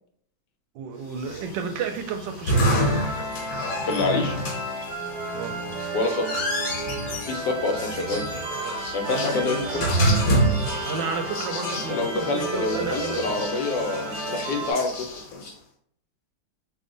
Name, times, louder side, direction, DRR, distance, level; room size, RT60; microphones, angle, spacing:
voice 1, 0.7-2.8 5.3-5.8 8.1-10.2 10.8-13.3, right 5 dB, 85° right, 6 dB, 1.3 m, -32 dB
sound 1, 1.2-15.5, equal, 60° left, 1.4 m, -28 dB
sound 2, 2.5-14.7, right 2 dB, 60° right, 0.5 m, -33 dB
voice 2, 3.8-4.4 5.9-6.3 7.2-8.3 8.9-10.0 11.9-15.1, left 3 dB, 75° left, 4 dB, 1.3 m, -27 dB
3.6 x 2.1 x 3.8 m, 0.64 s
omnidirectional pair, 2.0 m